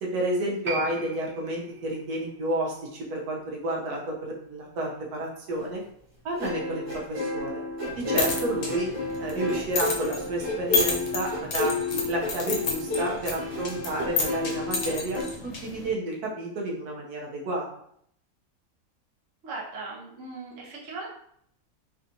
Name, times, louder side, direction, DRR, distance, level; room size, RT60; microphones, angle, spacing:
voice 1, 0.0-5.8 6.2-7.6 8.0-8.9 9.2-17.7, right 1 dB, 85° right, -1 dB, 1.2 m, -31 dB
Piano, 0.6-7.6 7.9-8.0, right 4 dB, 45° right, 0.4 m, -43 dB
sound 1, 6.3-15.2, left 2 dB, 25° right, 1.0 m, -31 dB
sound 2, 7.9-15.9, left 4 dB, 60° left, 0.9 m, -32 dB
voice 2, 19.4-21.1, right 3 dB, 60° right, -3 dB, 1.2 m, -38 dB
3.4 x 2.8 x 2.5 m, 0.68 s
omnidirectional pair, 1.6 m